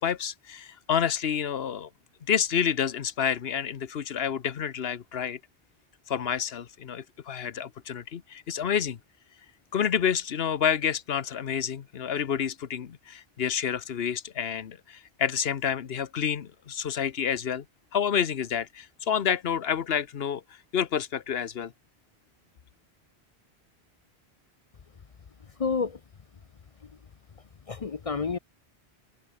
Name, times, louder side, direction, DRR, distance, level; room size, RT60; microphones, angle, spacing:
voice 1, 0.0-1.9 2.3-5.4 6.1-9.0 9.7-17.6 17.9-20.4 20.7-21.7, left 8 dB, 70° left, 1.1 m, -29 dB
voice 2, 25.6-26.0 26.8-26.9 27.7-28.4, left 5 dB, 40° left, 0.6 m, -29 dB
open air
omnidirectional pair, 1.1 m